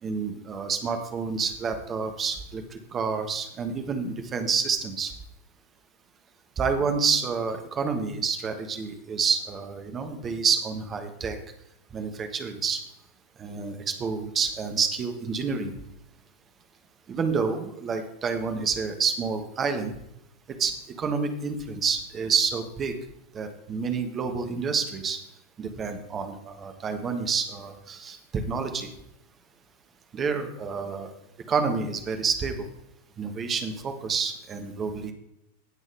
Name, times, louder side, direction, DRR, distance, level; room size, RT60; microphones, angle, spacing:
voice 1, 0.0-5.1 6.6-11.4 11.9-12.8 13.4-15.7 17.1-19.9 20.6-22.9 23.3-25.2 25.6-28.9 30.1-31.1 31.5-32.7 33.2-35.1, right 5 dB, 25° right, 6 dB, 1.4 m, -28 dB
18.0 x 6.3 x 3.5 m, 0.80 s
figure-of-eight pair, 90°, 0 cm